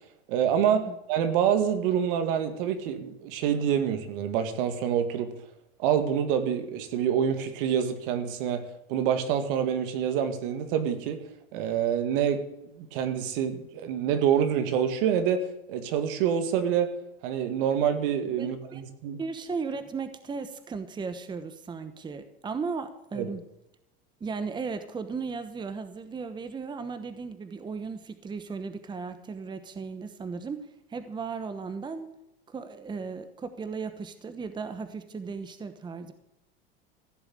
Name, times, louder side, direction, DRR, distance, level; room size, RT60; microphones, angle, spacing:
voice 1, 0.3-5.3 5.8-8.6 8.9-11.2 11.5-12.4 12.8-16.9 17.2-19.2 23.1-23.3, right 8 dB, 65° right, 9 dB, 2.1 m, -26 dB
voice 2, 18.4-18.8 19.2-23.4 24.2-32.1 32.5-36.1, right 5 dB, 15° right, 10 dB, 1.0 m, -36 dB
15.5 x 7.0 x 8.7 m, 0.88 s
supercardioid pair, 125°, 29 cm